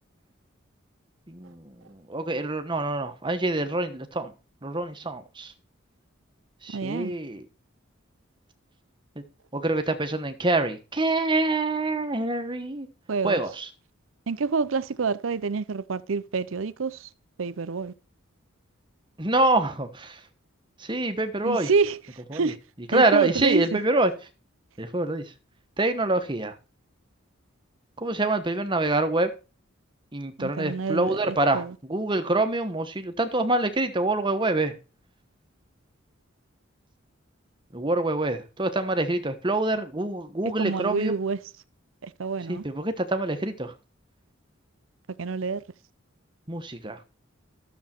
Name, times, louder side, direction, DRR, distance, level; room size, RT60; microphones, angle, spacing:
voice 1, 1.3-4.3 4.6-5.5 6.6-7.5 9.5-12.9 13.2-13.7 19.2-20.2 20.8-21.7 22.3-22.5 22.9-24.1 24.8-25.3 25.8-26.5 28.0-29.3 30.1-34.8 37.7-41.1 42.5-43.7 46.5-47.0, right 2 dB, 25° right, 1.1 m, -26 dB
voice 2, 6.7-7.1 13.1-13.4 14.3-17.1 17.4-17.9 21.4-22.0 22.3-22.6 22.9-23.8 30.4-31.7 40.6-41.4 42.0-42.6 45.2-45.6, right 4 dB, 70° right, 0.6 m, -27 dB
12.5 x 7.1 x 4.4 m
head